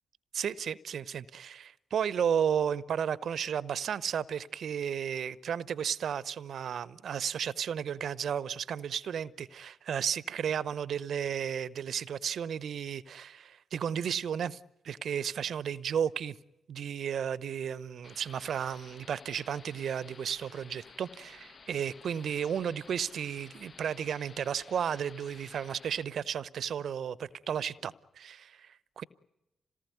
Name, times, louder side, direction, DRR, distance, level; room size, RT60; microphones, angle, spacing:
voice 1, 0.3-14.6 14.8-16.4 16.7-29.0, right 8 dB, 65° right, 0.8 m, -33 dB
sound 1, 18.0-26.0, left 5 dB, 50° left, 1.0 m, -54 dB
27.0 x 19.0 x 9.4 m
hypercardioid pair, 40°, 0 cm